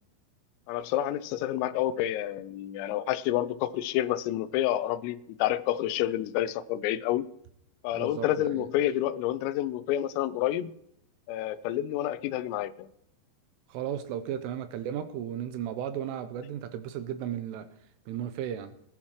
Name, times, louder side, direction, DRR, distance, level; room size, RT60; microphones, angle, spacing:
voice 1, 0.7-7.2 7.8-10.7 11.3-12.9, left 13 dB, 85° left, 3.3 m, -29 dB
voice 2, 7.9-8.7 13.7-17.7 18.1-18.7, right 10 dB, 80° right, 3.2 m, -35 dB
20.0 x 11.5 x 3.1 m
omnidirectional pair, 5.9 m